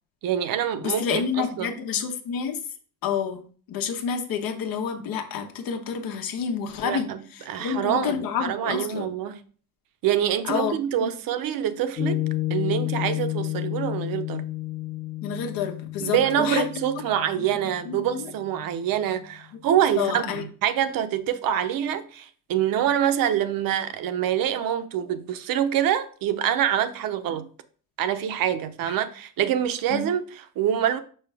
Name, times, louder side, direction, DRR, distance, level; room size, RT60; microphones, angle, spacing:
voice 1, 0.2-1.7 6.8-9.4 10.0-14.5 16.0-27.5 28.0-31.0, right 10 dB, 75° right, 0.8 m, -26 dB
voice 2, 0.8-2.6 3.0-7.1 7.3-9.1 10.4-10.7 11.0-11.1 15.2-16.6 17.4-17.5 17.8-18.2 19.5-19.6 20.0-20.4 28.9-29.0 29.9-30.0, left 7 dB, 85° left, 1.2 m, -29 dB
Piano, 12.0-18.6, left 16 dB, 55° left, 1.1 m, -31 dB
5.8 x 5.6 x 3.4 m
cardioid pair, 125°, 34 cm